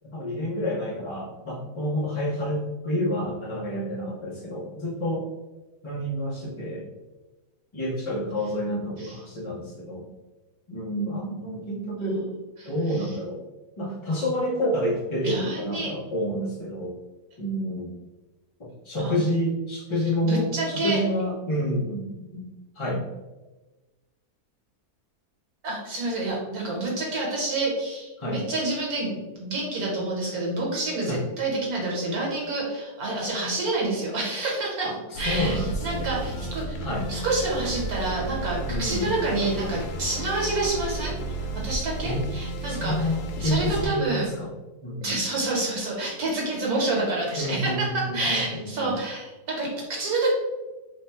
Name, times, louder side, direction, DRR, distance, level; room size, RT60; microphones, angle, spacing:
voice 1, 0.0-5.3 5.8-6.9 7.7-10.1 10.7-12.3 12.6-13.4 13.8-17.0 17.4-17.9 18.8-22.1 22.3-22.4 22.8-23.0 28.2-28.4 31.1-31.2 34.8-36.1 36.8-37.1 38.7-39.1 42.0-42.2 42.7-44.5 44.8-45.2 47.4-48.9, equal, 45° left, -4 dB, 0.3 m, -28 dB
voice 2, 12.6-13.1 15.2-15.9 19.0-19.2 20.2-21.0 25.6-34.9 35.2-36.8 37.1-43.1 43.4-44.3 45.0-50.3, right 2 dB, 65° right, -3 dB, 1.5 m, -28 dB
sound 1, 35.1-43.9, right 2 dB, 80° left, 1.1 m, -32 dB
3.1 x 2.2 x 4.1 m, 1.1 s
omnidirectional pair, 1.7 m